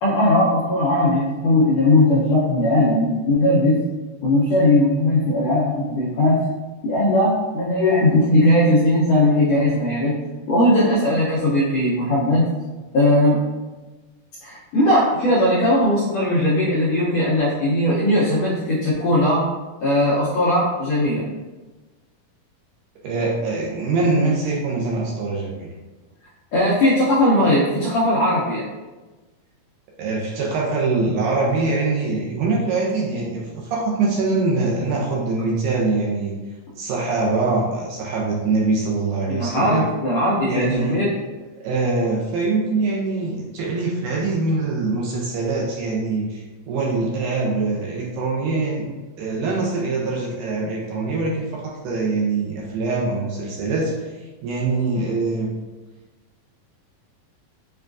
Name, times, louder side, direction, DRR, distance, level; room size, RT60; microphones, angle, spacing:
voice 1, 0.0-3.7 4.2-6.4 6.8-10.1 10.5-12.5 12.9-13.4 14.4-19.4 19.8-21.2 26.5-28.6 39.3-41.1, left 1 dB, 85° left, -8 dB, 1.4 m, -18 dB
voice 2, 23.0-25.7 30.0-36.3 36.8-39.9 40.5-41.0 41.6-48.8 49.2-54.1 54.4-55.5, right 3 dB, 80° right, -3 dB, 2.0 m, -23 dB
6.5 x 2.3 x 2.5 m, 1.2 s
omnidirectional pair, 3.9 m